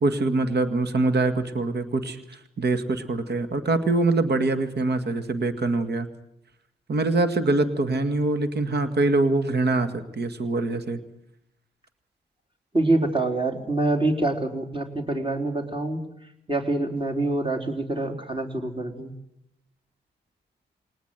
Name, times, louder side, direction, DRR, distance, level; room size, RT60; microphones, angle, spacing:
voice 1, 0.0-6.1 6.9-11.0, right 2 dB, 55° right, 10 dB, 1.9 m, -24 dB
voice 2, 12.7-16.0 16.5-19.1, right 2 dB, 25° right, 1 dB, 4.0 m, -25 dB
21.0 x 19.0 x 8.0 m, 0.79 s
supercardioid pair, 45°, 20 cm